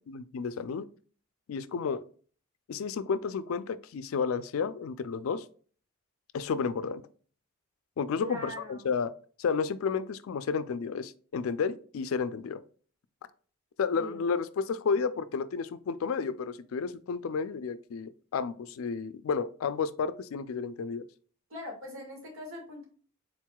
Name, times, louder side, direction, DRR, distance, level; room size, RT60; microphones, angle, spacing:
voice 1, 0.1-0.9 1.5-2.1 2.7-5.4 6.3-7.0 8.0-9.1 9.4-12.6 13.8-21.1, left 5 dB, 90° left, 14 dB, 0.4 m, -31 dB
voice 2, 8.2-8.9 13.9-14.2 21.5-22.8, left 1 dB, 90° right, -1 dB, 1.7 m, -42 dB
4.5 x 3.9 x 2.2 m, 0.44 s
head